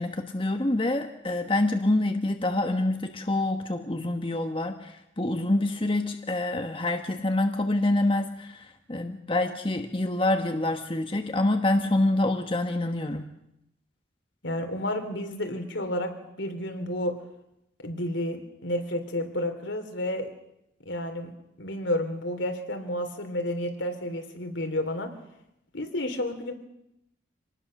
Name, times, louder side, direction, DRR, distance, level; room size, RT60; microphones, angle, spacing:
voice 1, 0.0-8.6 8.9-13.3, left 2 dB, 30° left, 5 dB, 1.2 m, -26 dB
voice 2, 14.4-16.1 16.4-17.1 17.8-20.3 20.8-21.3 21.6-25.1 25.7-26.5, left 1 dB, 75° left, 6 dB, 3.4 m, -31 dB
26.5 x 19.5 x 6.6 m, 0.84 s
head